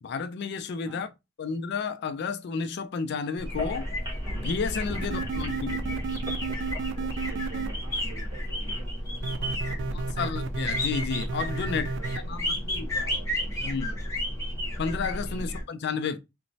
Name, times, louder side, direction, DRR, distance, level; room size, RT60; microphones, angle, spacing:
voice 1, 0.0-1.1 1.4-3.9 4.3-5.8 9.9-11.9 12.3-12.9 13.6-13.9 14.8-16.2, left 5 dB, 55° left, 0.4 m, -32 dB
sound 1, 3.4-15.6, equal, 15° left, 0.9 m, -32 dB
sound 2, 3.5-8.8, left 1 dB, 20° right, 1.1 m, -40 dB
sound 3, 5.0-7.7 9.2-12.2, right 4 dB, 60° right, 0.3 m, -33 dB
voice 2, 6.9-10.3 11.5-14.4 15.4-15.6, right 3 dB, 80° right, 1.0 m, -49 dB
2.9 x 2.1 x 2.6 m
head